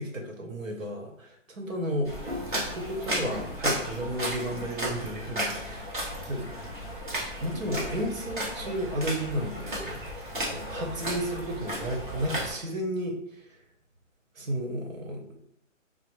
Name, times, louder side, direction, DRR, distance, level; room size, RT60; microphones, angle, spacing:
voice 1, 0.0-2.1 2.7-5.9 6.2-6.5 7.4-10.0 10.4-13.6 14.3-15.3, equal, 80° right, 2 dB, 1.0 m, -33 dB
sound 1, 2.0-12.5, right 1 dB, 40° right, 0.9 m, -34 dB
4.2 x 2.0 x 3.2 m, 0.80 s
hypercardioid pair, 175°, 39 cm